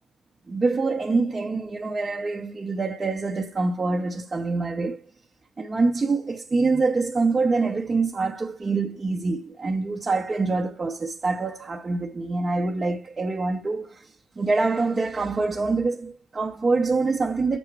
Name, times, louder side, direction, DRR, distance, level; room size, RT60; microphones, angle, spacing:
voice 1, 0.5-5.0 5.6-14.1 14.4-17.6, right 3 dB, 30° right, 1.0 m, -25 dB
7.1 x 5.9 x 4.8 m
cardioid pair, 90°, 0 cm